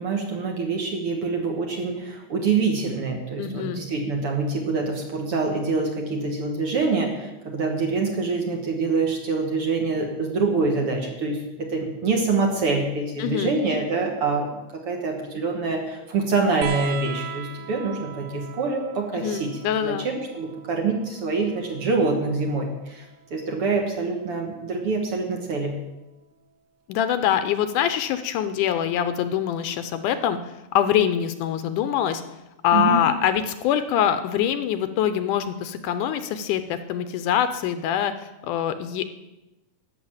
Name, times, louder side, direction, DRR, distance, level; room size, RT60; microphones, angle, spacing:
voice 1, 0.0-19.5 19.8-23.1 23.3-25.7 32.7-33.0, right 4 dB, 50° right, 2 dB, 2.0 m, -25 dB
voice 2, 3.4-3.8 13.2-13.5 19.1-20.1 26.9-32.2 32.6-39.1, left 9 dB, 75° left, 10 dB, 2.1 m, -24 dB
sound 1, 16.6-23.7 25.1-25.9 27.2-27.3, right 8 dB, 90° right, 2.5 m, -40 dB
12.0 x 7.1 x 8.7 m, 0.99 s
omnidirectional pair, 3.8 m